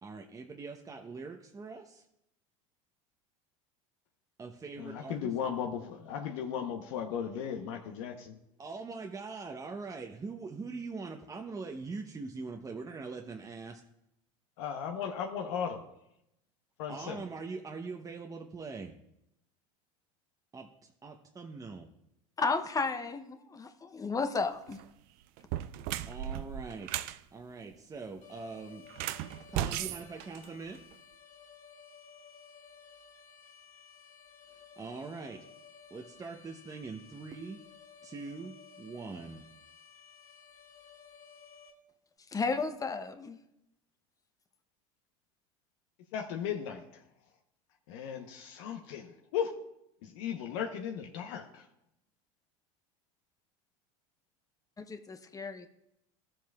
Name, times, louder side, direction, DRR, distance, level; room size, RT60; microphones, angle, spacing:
voice 1, 0.0-2.0 4.4-5.3 8.6-13.8 16.9-18.9 20.5-20.7 21.0-21.9 26.1-27.0 27.3-28.8 29.5-30.8 34.8-35.5 35.9-37.6 38.0-39.4, right 4 dB, 20° right, 3 dB, 0.8 m, -42 dB
voice 2, 4.8-8.4 14.6-15.8 16.8-17.2 46.1-46.8 47.9-49.5 50.0-51.7, left 8 dB, 70° left, 2 dB, 0.9 m, -36 dB
voice 3, 22.4-24.8 42.3-43.4 54.8-55.7, left 4 dB, 20° left, 9 dB, 0.7 m, -33 dB
sound 1, 24.6-24.9 25.4-27.2 28.9-30.9, right 12 dB, 60° right, 0.5 m, -36 dB
sound 2, 28.2-41.7, left 6 dB, 45° left, 2.6 m, -55 dB
14.0 x 7.5 x 2.3 m, 0.82 s
hypercardioid pair, 90°, 17 cm